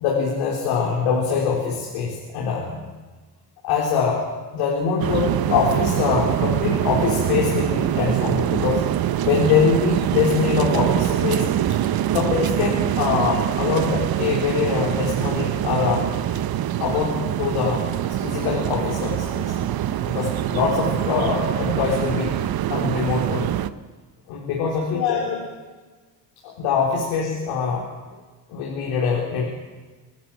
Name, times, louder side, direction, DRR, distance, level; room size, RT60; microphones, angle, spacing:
voice 1, 0.0-2.8 3.6-4.2 4.5-8.8 9.2-11.8 12.1-16.1 16.8-17.8 18.2-19.6 20.0-22.4 22.7-23.5 24.3-25.4 26.4-27.8 28.5-29.4, left 6 dB, 90° left, -2 dB, 4.3 m, -23 dB
sound 1, 5.0-23.7, right 11 dB, 55° right, 1.0 m, -24 dB
24.5 x 13.0 x 9.1 m, 1.3 s
supercardioid pair, 85°, 44 cm